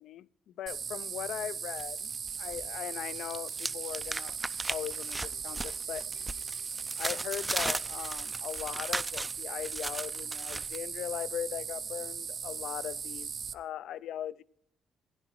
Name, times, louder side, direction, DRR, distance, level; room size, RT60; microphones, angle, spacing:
voice 1, 0.0-2.1 2.4-4.4 4.7-6.1 7.0-14.4, left 11 dB, 75° left, 0.3 m, -39 dB
sound 1, 0.7-13.5, right 6 dB, 50° right, 0.6 m, -38 dB
sound 2, 1.8-2.7 2.9-10.8, right 2 dB, 15° right, 0.4 m, -37 dB
sound 3, 5.3-8.5, right 6 dB, 90° right, 2.6 m, -65 dB
16.5 x 10.0 x 3.0 m
cardioid pair, 90°, 0 cm